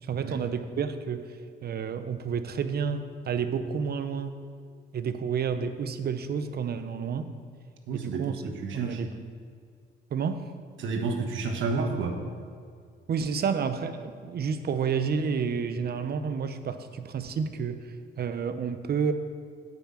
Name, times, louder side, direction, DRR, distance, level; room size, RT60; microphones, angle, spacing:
voice 1, 0.0-4.3 4.9-7.3 7.9-8.4 8.7-9.2 10.1-10.5 13.1-19.1, right 6 dB, 50° right, 9 dB, 0.8 m, -30 dB
voice 2, 7.9-9.0 10.8-12.2, right 4 dB, 75° right, 4 dB, 1.3 m, -30 dB
9.0 x 5.9 x 7.4 m, 2.1 s
cardioid pair, 90°, 20 cm